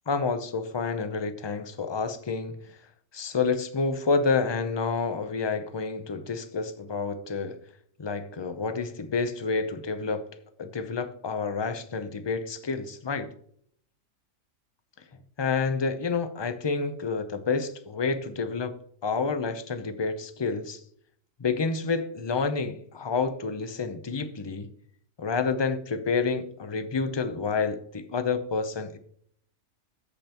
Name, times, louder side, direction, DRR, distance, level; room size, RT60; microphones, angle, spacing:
voice 1, 0.1-2.6 3.1-7.6 8.0-10.2 10.6-13.3 15.4-18.7 19.0-20.8 21.4-24.7 25.2-29.0, left 4 dB, 30° left, 0.5 m, -29 dB
14.5 x 5.5 x 2.9 m
omnidirectional pair, 1.4 m